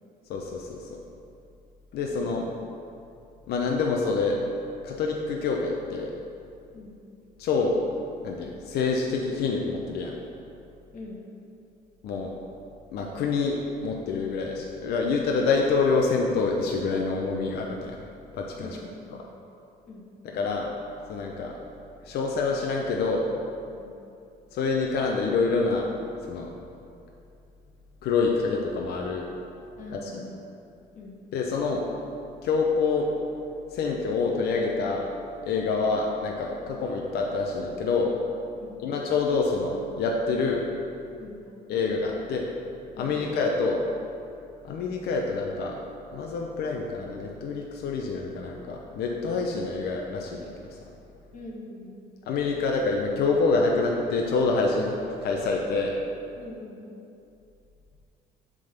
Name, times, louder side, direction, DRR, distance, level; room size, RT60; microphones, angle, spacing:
voice 1, 0.3-1.0 1.9-2.5 3.5-4.4 4.8-6.1 7.4-7.8 8.2-10.1 12.0-12.3 12.9-18.0 18.3-18.8 20.2-20.7 21.1-21.6 22.0-23.3 24.5-25.9 26.3-26.5 28.0-29.3 29.9-30.2 31.3-31.8 32.4-33.1 33.7-35.1 35.4-38.1 38.8-40.6 41.7-42.5 43.0-43.8 44.6-45.8 46.1-50.5 52.3-56.0, left 4 dB, 70° left, 0 dB, 0.8 m, -26 dB
voice 2, 18.6-19.3 19.9-20.0 23.7-23.9 29.8-30.4 30.9-31.2 36.6-36.7 38.6-38.8 41.2-41.4 43.0-43.2 51.3-52.0 56.4-56.8, left 2 dB, 50° left, -1 dB, 1.5 m, -43 dB
7.5 x 3.8 x 6.6 m, 2.6 s
cardioid pair, 110°, 17 cm